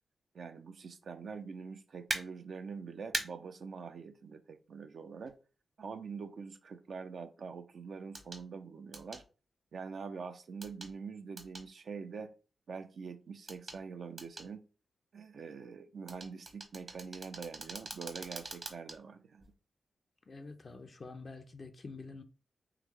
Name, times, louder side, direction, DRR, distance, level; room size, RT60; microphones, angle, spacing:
voice 1, 0.3-5.4 5.8-9.2 9.7-12.3 12.7-14.6 15.1-19.4, right 5 dB, 70° right, 0.4 m, -44 dB
sound 1, 2.1-2.2 3.1-3.3 5.3-5.4 8.1-8.4 8.9-9.2 10.6-10.9 11.4-11.7 13.5-13.8 14.2-14.5 16.1-19.0 19.4-19.5, right 3 dB, 50° right, 1.0 m, -40 dB
voice 2, 20.3-22.2, left 3 dB, 50° left, 0.4 m, -47 dB
3.6 x 2.9 x 3.1 m
cardioid pair, 50°, 0 cm